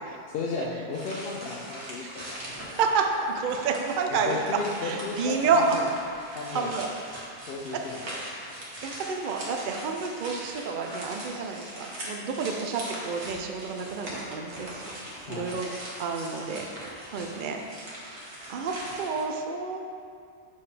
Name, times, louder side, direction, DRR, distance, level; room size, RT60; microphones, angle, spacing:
voice 1, 0.0-2.4 4.1-5.9 6.3-6.8 7.5-8.2 15.3-15.6, left 4 dB, 65° left, -3 dB, 0.8 m, -35 dB
sound 1, 0.9-19.2, right 1 dB, 90° right, 1.5 m, -41 dB
voice 2, 2.6-3.0 3.4-4.4 4.8-5.6 6.5-6.9 8.8-14.8 15.3-15.7 16.0-16.6 17.1-17.6 18.5-19.8, right 5 dB, 60° right, 3 dB, 0.6 m, -29 dB
6.7 x 5.4 x 3.3 m, 2.4 s
omnidirectional pair, 1.1 m